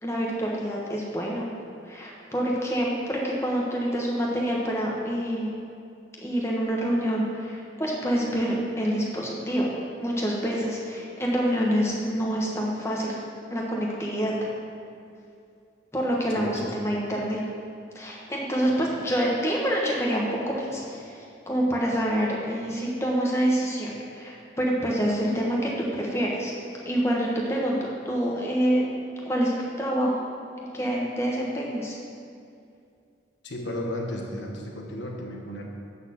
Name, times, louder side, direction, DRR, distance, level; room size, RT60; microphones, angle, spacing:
voice 1, 0.0-1.5 1.9-5.5 6.2-13.2 13.5-14.3 15.9-17.4 17.9-26.5 26.8-27.8 28.0-28.9 29.2-29.5 29.8-30.1 30.7-32.0, equal, 15° left, -3 dB, 1.1 m, -27 dB
voice 2, 16.3-16.9 33.4-35.7, left 1 dB, 75° left, 0 dB, 1.1 m, -34 dB
8.2 x 4.2 x 6.8 m, 2.5 s
head